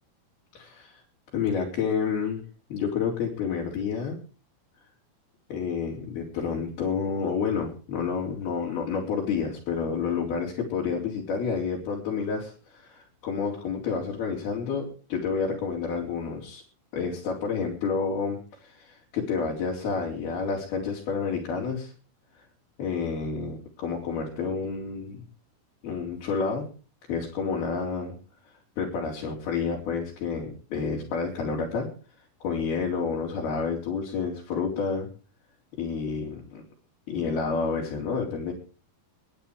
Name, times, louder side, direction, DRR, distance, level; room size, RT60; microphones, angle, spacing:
voice 1, 0.6-1.0 1.3-2.4 2.7-4.2 5.5-16.6 16.9-21.9 22.8-25.2 25.8-26.7 27.1-28.2 28.8-31.9 32.4-35.1 35.8-36.6 37.1-38.5, left 5 dB, 75° left, -2 dB, 5.6 m, -29 dB
21.5 x 10.5 x 4.9 m, 0.38 s
omnidirectional pair, 4.5 m